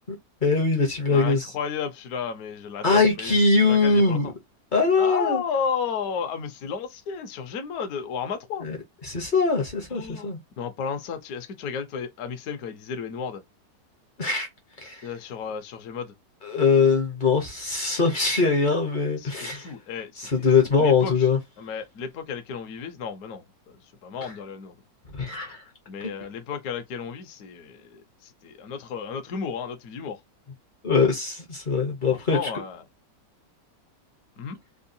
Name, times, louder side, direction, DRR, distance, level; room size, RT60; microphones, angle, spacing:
voice 1, 0.4-1.5 2.8-4.3 4.7-5.4 8.6-8.8 9.0-10.4 14.2-14.5 14.8-15.0 16.4-19.7 20.2-21.4 25.1-25.6 26.0-26.1 30.8-32.5, left 4 dB, 40° left, 0.7 m, -22 dB
voice 2, 1.1-3.4 3.7-4.3 5.0-8.7 9.9-13.4 15.0-16.1 19.2-20.3 20.6-21.3 21.6-24.7 25.9-30.2 32.1-32.8 34.4-34.6, left 6 dB, 60° left, 1.1 m, -33 dB
3.6 x 2.3 x 2.6 m
omnidirectional pair, 1.9 m